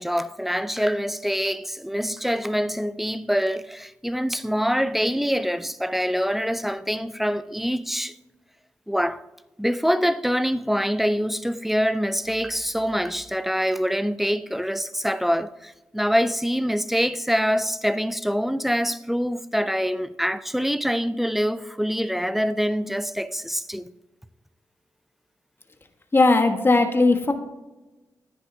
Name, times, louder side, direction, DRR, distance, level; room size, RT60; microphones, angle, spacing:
voice 1, 0.0-8.1 8.9-9.2 9.6-23.9, equal, 5° right, 0.5 m, -25 dB
voice 2, 26.1-27.3, left 3 dB, 30° left, 1.4 m, -18 dB
10.5 x 9.8 x 2.8 m
cardioid pair, 55°, 8 cm